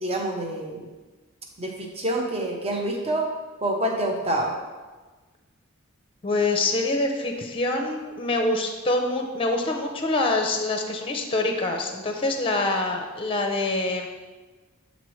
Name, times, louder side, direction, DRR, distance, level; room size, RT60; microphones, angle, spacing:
voice 1, 0.0-0.9 1.6-3.3 3.6-4.6, right 1 dB, 30° right, 0 dB, 0.8 m, -27 dB
voice 2, 6.2-14.1, left 2 dB, 25° left, 3 dB, 0.6 m, -25 dB
8.2 x 4.0 x 3.1 m, 1.3 s
head